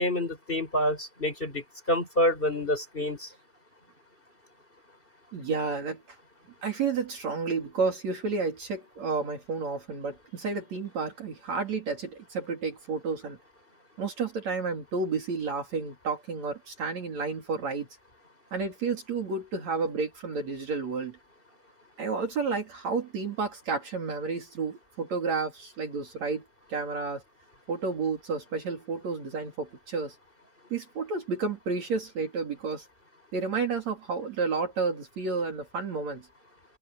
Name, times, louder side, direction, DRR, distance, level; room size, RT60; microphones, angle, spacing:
voice 1, 0.0-3.3, left 1 dB, 15° left, 5.7 m, -27 dB
voice 2, 5.3-6.2 6.6-13.4 14.0-17.9 18.5-21.2 22.0-26.4 26.7-27.2 27.7-30.2 30.7-32.9 33.3-36.3, right 4 dB, 55° right, 4.2 m, -31 dB
omnidirectional pair, 3.9 m